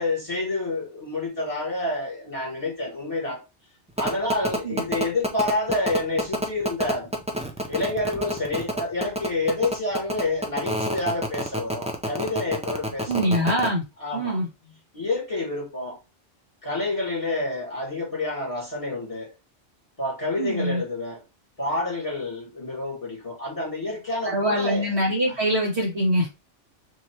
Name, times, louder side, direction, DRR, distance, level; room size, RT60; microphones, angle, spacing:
voice 1, 0.0-3.4 4.0-7.1 7.7-13.4 14.0-14.4 14.9-16.0 16.6-19.3 20.0-21.2 21.6-24.9 25.3-25.4, left 2 dB, 30° left, 1.9 m, -28 dB
sound 1, 4.0-13.7, right 1 dB, 5° right, 0.5 m, -27 dB
voice 2, 13.1-13.8 14.1-14.5 20.4-20.8 24.2-26.3, equal, 60° right, 2.1 m, -23 dB
3.4 x 3.1 x 4.5 m
omnidirectional pair, 1.2 m